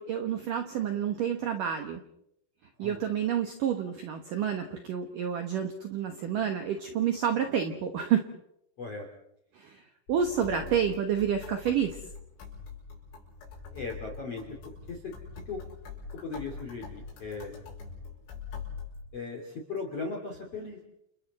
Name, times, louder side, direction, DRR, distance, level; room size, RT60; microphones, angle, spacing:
voice 1, 0.0-2.0 2.8-8.3 9.5-9.8 10.1-12.0, right 8 dB, 70° right, 5 dB, 2.0 m, -29 dB
sound 1, 10.1-19.0, left 5 dB, 75° left, 7.7 m, -44 dB
voice 2, 13.7-15.1 15.5-15.6 16.2-17.6 19.1-20.8, left 4 dB, 40° left, 2 dB, 3.0 m, -38 dB
29.5 x 29.0 x 4.2 m, 0.79 s
omnidirectional pair, 5.6 m